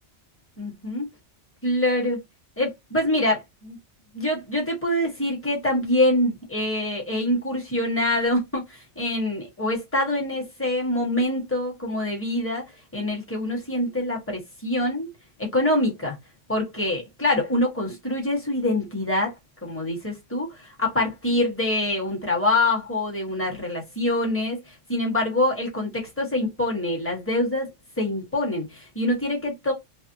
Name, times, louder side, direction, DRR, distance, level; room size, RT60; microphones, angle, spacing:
voice 1, 0.6-1.1 1.6-2.2 2.6-3.8 4.1-15.1 15.4-16.2 16.5-19.3 19.6-27.7 28.0-29.7, left 1 dB, 10° left, 1.0 m, -25 dB
2.6 x 2.0 x 2.6 m
omnidirectional pair, 1.2 m